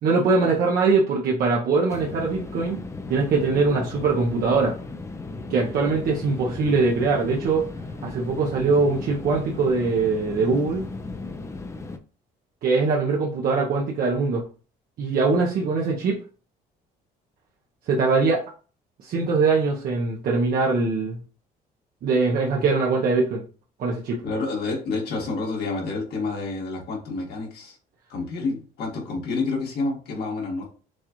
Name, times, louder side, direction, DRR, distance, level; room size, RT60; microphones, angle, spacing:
voice 1, 0.0-2.8 3.1-4.7 5.5-7.7 8.0-10.8 12.6-14.4 15.0-16.2 17.9-18.4 19.0-21.2 22.0-23.4 23.8-24.2, right 4 dB, 60° right, -2 dB, 0.9 m, -22 dB
sound 1, 1.9-12.0, left 3 dB, 15° left, 0.5 m, -36 dB
voice 2, 24.2-27.8 28.1-30.6, left 3 dB, 70° left, -1 dB, 1.9 m, -29 dB
6.4 x 2.4 x 3.0 m, 0.37 s
cardioid pair, 110°, 17 cm